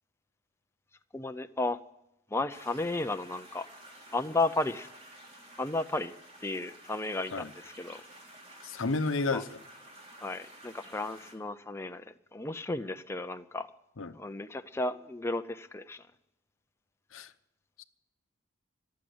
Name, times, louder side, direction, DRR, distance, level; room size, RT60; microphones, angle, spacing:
voice 1, 1.1-1.8 2.3-3.7 4.1-4.9 5.6-6.1 6.4-8.0 9.3-9.4 10.2-12.0 12.3-13.7 14.2-16.0, left 2 dB, 15° left, 8 dB, 0.6 m, -33 dB
sound 1, 2.5-11.3, right 1 dB, 35° right, 3.4 m, -52 dB
voice 2, 8.6-9.5 14.0-14.2 17.1-17.3 17.8-17.9, left 3 dB, 90° left, 11 dB, 0.9 m, -31 dB
15.0 x 10.5 x 7.9 m, 0.88 s
head